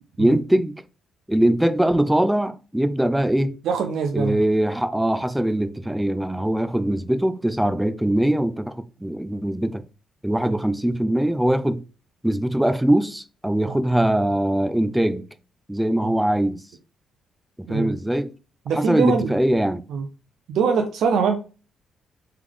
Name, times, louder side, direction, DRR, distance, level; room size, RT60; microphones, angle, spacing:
voice 1, 0.2-0.8 1.3-3.6 4.1-9.8 10.2-11.8 12.2-15.3 15.7-16.6 17.6-18.3 18.7-19.8, right 1 dB, 5° right, 0.4 m, -22 dB
voice 2, 3.6-4.4 13.7-13.8 16.0-16.1 17.7-17.9 18.7-19.3 19.9-20.1 20.5-21.4, right 6 dB, 75° right, 0.5 m, -23 dB
3.6 x 3.3 x 3.4 m
cardioid pair, 90°, 0 cm